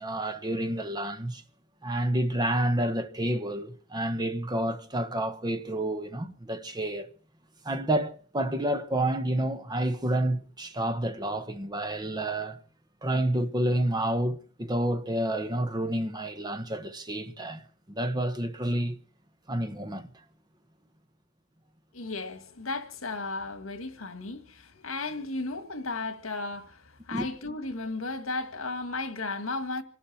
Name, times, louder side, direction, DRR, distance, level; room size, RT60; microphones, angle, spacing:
voice 1, 0.0-1.4 1.8-7.1 7.6-12.6 13.0-17.6 17.9-19.0 19.5-20.1 27.1-27.3, right 1 dB, 20° right, 1.2 m, -29 dB
voice 2, 21.9-29.8, left 3 dB, 75° left, 2.0 m, -35 dB
27.5 x 12.0 x 4.4 m
head